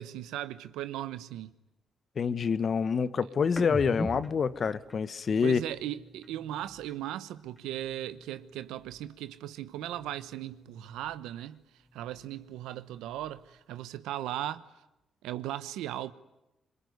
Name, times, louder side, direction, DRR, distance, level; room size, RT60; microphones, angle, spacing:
voice 1, 0.0-1.5 5.4-11.6 11.9-14.6 15.2-16.1, right 13 dB, 90° right, 1.0 m, -37 dB
voice 2, 2.2-5.6, left 6 dB, 55° left, 1.3 m, -27 dB
sound 1, 3.5-7.1 7.4-9.2 9.5-11.4 11.7-13.6, left 1 dB, 20° left, 2.9 m, -44 dB
25.5 x 22.5 x 9.6 m
supercardioid pair, 55°, 0 cm